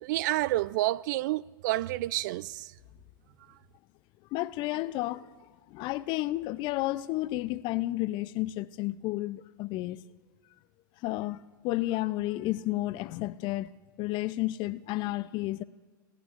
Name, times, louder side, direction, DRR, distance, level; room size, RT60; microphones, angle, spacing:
voice 1, 0.0-2.7, right 17 dB, 60° right, 0.4 m, -29 dB
voice 2, 4.3-5.3 5.7-10.0 11.0-11.4 11.6-13.7 14.0-15.6, left 17 dB, 45° left, 0.5 m, -31 dB
29.5 x 17.0 x 2.5 m
hypercardioid pair, 100°, 12 cm